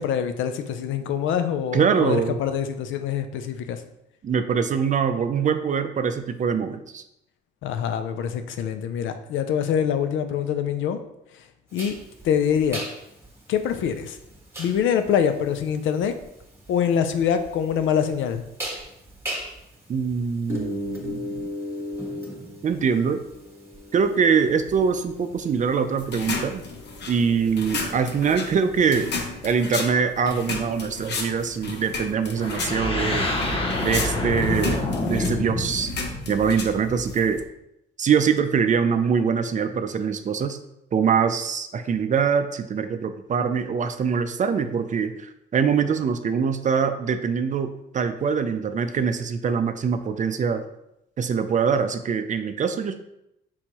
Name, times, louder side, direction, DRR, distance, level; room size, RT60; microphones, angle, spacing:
voice 1, 0.0-3.8 7.6-11.0 11.7-12.0 12.2-12.8 13.5-14.2 14.6-16.1 16.7-18.4, left 8 dB, 80° left, 9 dB, 0.5 m, -24 dB
voice 2, 1.7-2.4 4.2-7.0 19.9-21.5 22.6-23.2 23.9-26.6 27.1-29.1 29.4-33.3 33.8-35.9 36.3-37.4 38.0-40.6 40.9-50.6 51.2-53.0, right 6 dB, 40° right, 9 dB, 0.4 m, -23 dB
sound 1, 11.8-29.4, left 1 dB, 10° right, 1.2 m, -38 dB
sound 2, 26.0-37.4, left 4 dB, 60° left, 0.8 m, -34 dB
sound 3, 32.4-37.2, left 2 dB, 25° left, 0.9 m, -27 dB
4.4 x 3.8 x 2.9 m, 0.81 s
cardioid pair, 90°, 20 cm